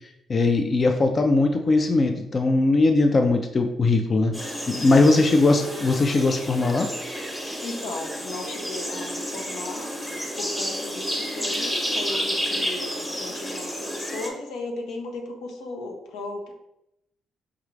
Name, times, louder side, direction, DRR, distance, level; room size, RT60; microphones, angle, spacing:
voice 1, 0.3-6.9, left 3 dB, 40° left, 5 dB, 0.4 m, -20 dB
sound 1, 4.3-14.3, equal, 10° left, 0.9 m, -31 dB
voice 2, 7.6-9.9 10.4-16.5, left 2 dB, 85° left, 2 dB, 0.7 m, -36 dB
4.7 x 2.4 x 3.2 m, 0.83 s
cardioid pair, 90°, 0 cm